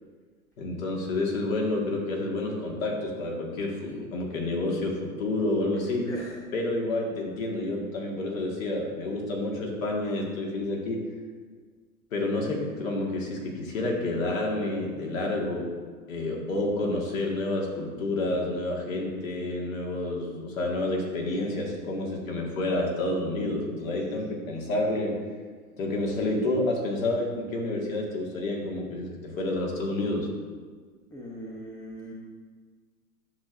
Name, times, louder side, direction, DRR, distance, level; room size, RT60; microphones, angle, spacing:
voice 1, 0.6-6.0 6.5-11.0 12.1-15.7 16.1-25.1 25.8-30.3, left 2 dB, 60° left, 0 dB, 1.9 m, -29 dB
voice 2, 6.1-6.4 19.0-19.2 19.9-20.0 23.9-24.0 31.1-32.1, right 1 dB, 5° left, -4 dB, 0.7 m, -41 dB
10.0 x 6.2 x 2.6 m, 1.5 s
hypercardioid pair, 120°, 45 cm